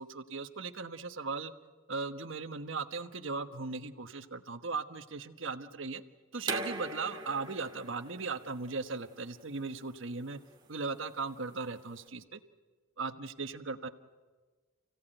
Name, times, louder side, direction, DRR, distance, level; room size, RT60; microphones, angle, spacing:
voice 1, 0.0-1.5 1.9-6.0 6.3-10.4 10.7-12.4 13.0-13.9, right 4 dB, 65° right, 9 dB, 1.3 m, -38 dB
sound 1, 6.4-12.0, right 3 dB, 20° right, 2.4 m, -42 dB
29.5 x 17.0 x 9.1 m, 1.4 s
head